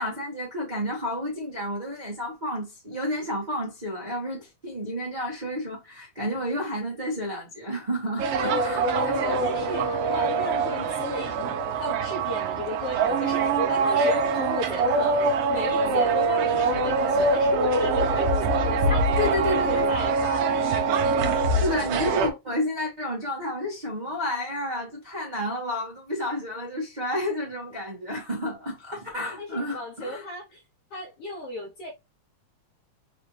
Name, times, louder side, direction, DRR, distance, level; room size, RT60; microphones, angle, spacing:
voice 1, 0.0-9.2 19.2-19.9 21.5-30.2, left 1 dB, 35° right, 0.6 m, -30 dB
sound 1, 8.2-22.3, right 3 dB, 70° right, 1.6 m, -24 dB
voice 2, 8.9-21.0 21.3-21.5 29.4-30.6 30.9-31.9, left 1 dB, 70° left, 1.5 m, -35 dB
4.8 x 2.6 x 3.1 m
omnidirectional pair, 3.4 m